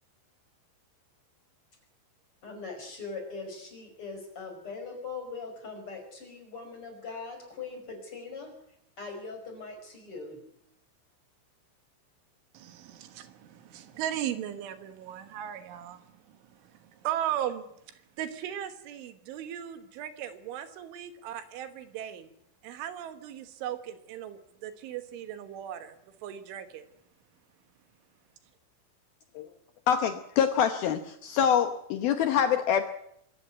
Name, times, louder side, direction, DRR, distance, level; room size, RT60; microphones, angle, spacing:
voice 1, 2.4-8.5 9.0-10.4, left 4 dB, 25° left, 4 dB, 5.9 m, -41 dB
voice 2, 12.6-16.0 17.0-17.7 18.2-22.3 22.6-26.0 26.2-26.9, right 11 dB, 75° right, 9 dB, 3.7 m, -37 dB
voice 3, 29.9-32.8, left 8 dB, 85° left, 7 dB, 2.1 m, -25 dB
24.5 x 14.0 x 9.3 m, 0.75 s
omnidirectional pair, 5.8 m